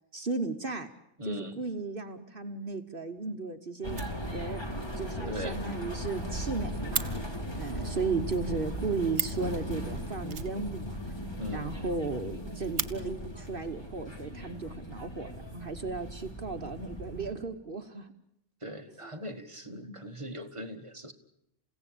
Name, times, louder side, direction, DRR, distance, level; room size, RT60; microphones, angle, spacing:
voice 1, 0.1-0.9 1.2-4.0 4.3-4.6 4.9-7.2 7.5-11.0 11.5-18.1 19.0-19.1 19.7-20.0, right 4 dB, 50° right, 7 dB, 1.3 m, -35 dB
voice 2, 1.2-1.6 5.3-5.6 11.4-11.7 18.6-21.1, equal, 25° right, 6 dB, 1.7 m, -39 dB
Fire, 3.2-3.3 3.5-3.6 3.9-4.7 5.0-5.1 5.4-5.5 5.8-5.9 6.1-7.1 8.8-8.9 9.1-9.5 10.3-11.2 11.5-11.6 11.9-12.0 12.4-12.9 13.9-14.0 14.7-15.3, right 6 dB, 70° right, 1.5 m, -36 dB
sound 1, 3.8-17.3, equal, 20° left, 2.8 m, -38 dB
29.0 x 16.5 x 8.6 m, 0.80 s
omnidirectional pair, 1.2 m